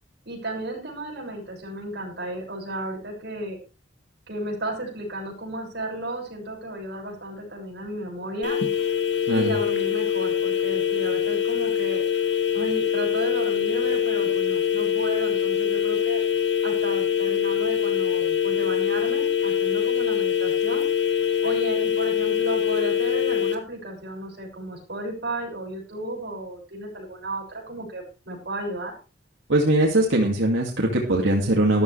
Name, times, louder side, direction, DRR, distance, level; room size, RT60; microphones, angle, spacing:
voice 1, 0.3-3.6 4.3-8.6 9.3-12.0 12.5-16.2 16.6-20.9 21.4-28.9, right 1 dB, 60° right, 0 dB, 6.2 m, -34 dB
sound 1, 8.4-23.5, left 8 dB, 65° left, 2.5 m, -24 dB
voice 2, 29.5-31.8, right 1 dB, 90° right, -1 dB, 2.5 m, -21 dB
14.0 x 12.5 x 3.4 m, 0.32 s
head